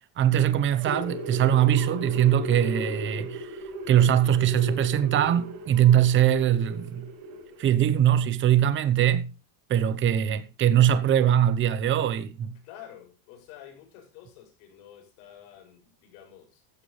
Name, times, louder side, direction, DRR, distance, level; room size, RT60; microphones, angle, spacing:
voice 1, 0.2-3.6 3.9-7.1 7.6-9.3 9.7-12.5, right 10 dB, 25° right, 1.0 m, -22 dB
sound 1, 0.6-7.8, right 1 dB, 85° right, 7.1 m, -37 dB
voice 2, 12.6-16.8, left 10 dB, 70° left, 7.0 m, -49 dB
15.5 x 12.0 x 3.3 m
cardioid pair, 175°, 45 cm